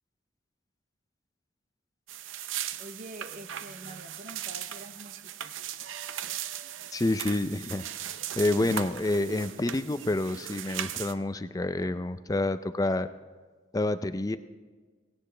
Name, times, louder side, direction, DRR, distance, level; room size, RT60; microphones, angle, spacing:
sound 1, 2.1-11.1, right 10 dB, 90° right, 0.6 m, -38 dB
voice 1, 2.8-5.6, right 1 dB, 40° right, 5 dB, 0.7 m, -46 dB
voice 2, 6.9-13.1 13.7-14.4, left 2 dB, 20° left, 12 dB, 0.4 m, -28 dB
18.0 x 17.0 x 3.3 m, 1.4 s
head